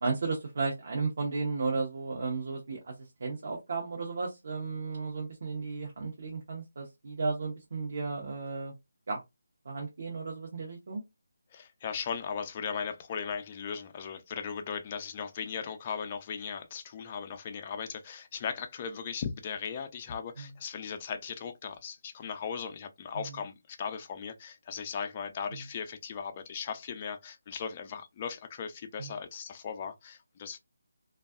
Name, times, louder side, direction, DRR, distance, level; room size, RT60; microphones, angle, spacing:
voice 1, 0.0-8.7 9.1-9.2 9.6-11.0 20.4-20.5 23.1-23.4 25.5-25.6 29.0-29.1, right 4 dB, 55° right, 0.8 m, -34 dB
voice 2, 11.5-30.6, left 6 dB, 30° left, 0.4 m, -38 dB
2.5 x 2.3 x 2.3 m
figure-of-eight pair, 160°, 0 cm